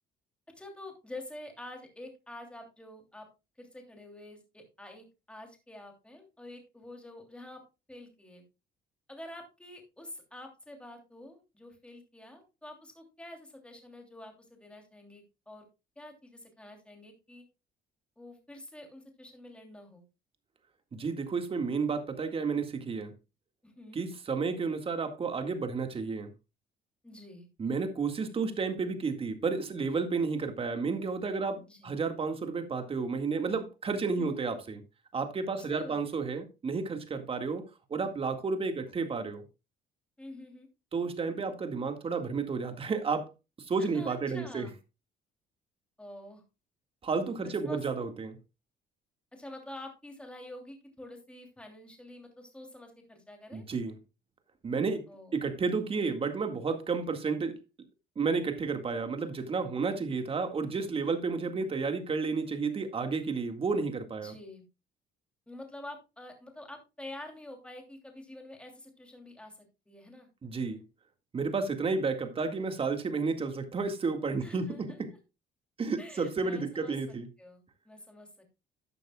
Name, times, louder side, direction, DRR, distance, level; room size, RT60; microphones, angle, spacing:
voice 1, 0.6-3.3 3.6-7.6 7.9-8.4 9.1-15.7 16.0-17.4 18.2-20.0 23.6-24.0 27.0-27.5 31.7-31.9 34.2-34.6 35.6-36.0 40.2-40.7 43.8-44.7 46.0-46.4 47.4-47.8 49.3-53.6 55.1-55.4 60.0-60.2 64.2-64.6 65.5-70.3 74.4-75.0 76.0-78.3, left 1 dB, 5° left, 3.0 m, -47 dB
voice 2, 20.9-23.1 23.9-26.3 27.6-34.8 35.1-37.7 37.9-39.4 40.9-43.3 43.7-44.7 47.0-48.4 53.5-54.0 54.6-55.1 55.3-57.6 58.2-64.3 70.4-70.8 71.3-75.1 75.8-77.3, right 4 dB, 35° right, 1.9 m, -31 dB
13.5 x 9.1 x 2.3 m
cardioid pair, 110°, 17 cm